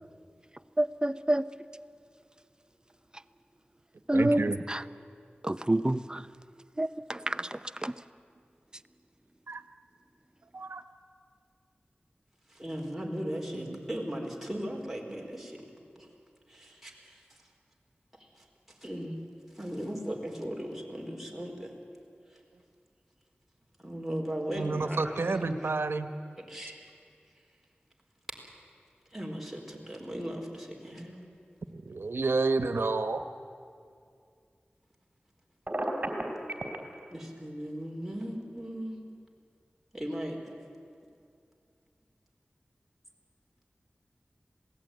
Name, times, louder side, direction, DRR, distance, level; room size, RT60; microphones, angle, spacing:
voice 1, 0.8-1.4 4.1-4.8 5.4-6.2 6.8-7.9, right 1 dB, 20° right, 13 dB, 0.7 m, -28 dB
voice 2, 4.1-4.6 6.3-6.4 9.5-9.6 10.5-10.8 13.5-13.8 24.5-26.1 31.7-33.2, right 3 dB, 90° right, 9 dB, 1.2 m, -30 dB
voice 3, 12.5-16.1 16.5-17.2 18.2-18.4 18.8-19.2 19.5-21.8 22.3-22.4 23.8-25.5 26.4-26.8 29.1-31.2 37.1-39.0 39.9-40.5, equal, 5° right, 0 dB, 4.6 m, -37 dB
Telephone, 35.7-36.8, right 1 dB, 40° right, 3.7 m, -31 dB
26.5 x 18.5 x 9.3 m, 2.3 s
wide cardioid pair, 55°, 4 cm